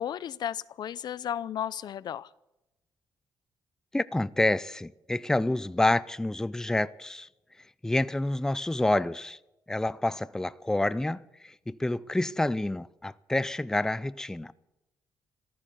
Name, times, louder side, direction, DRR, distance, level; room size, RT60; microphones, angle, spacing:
voice 1, 0.0-2.3, left 10 dB, 60° left, 0.5 m, -34 dB
voice 2, 3.9-7.3 7.8-9.4 9.7-14.5, left 2 dB, 5° left, 0.5 m, -28 dB
14.5 x 13.5 x 7.1 m
cardioid pair, 115°, 8 cm